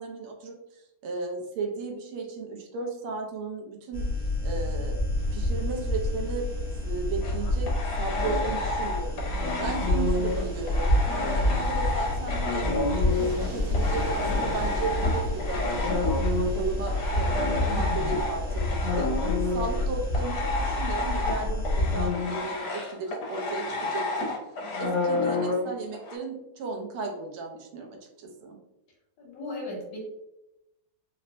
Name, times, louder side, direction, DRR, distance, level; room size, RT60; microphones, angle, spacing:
voice 1, 0.0-4.1 4.4-5.0 5.3-6.5 6.8-9.2 9.6-12.7 13.0-16.1 16.5-19.1 19.5-24.3 24.8-28.6, right 4 dB, 90° right, 2 dB, 1.5 m, -35 dB
sound 1, 3.9-22.1, left 1 dB, 40° left, 0.3 m, -28 dB
sound 2, 5.2-20.5, right 1 dB, 70° right, 1.7 m, -43 dB
sound 3, 7.2-13.5 13.7-26.2, left 2 dB, 85° left, 1.5 m, -30 dB
voice 2, 11.5-12.0 17.7-18.2 29.2-30.0, left 1 dB, 65° left, -3 dB, 1.6 m, -37 dB
4.2 x 2.1 x 2.5 m, 0.89 s
omnidirectional pair, 2.3 m